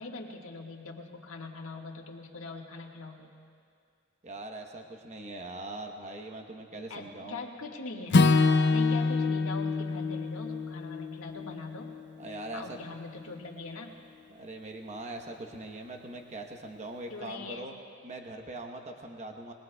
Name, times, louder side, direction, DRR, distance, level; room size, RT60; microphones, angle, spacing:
voice 1, 0.0-3.3 6.9-8.2 8.7-11.9 12.5-14.0 17.1-17.7, left 3 dB, 75° left, 0 dB, 1.6 m, -42 dB
voice 2, 4.2-7.5 12.2-12.8 14.3-17.7 18.0-19.5, right 2 dB, 35° right, 3 dB, 0.9 m, -41 dB
Acoustic guitar / Strum, 8.1-12.4, left 3 dB, 55° left, 0.5 m, -26 dB
25.5 x 21.0 x 2.3 m, 2.3 s
head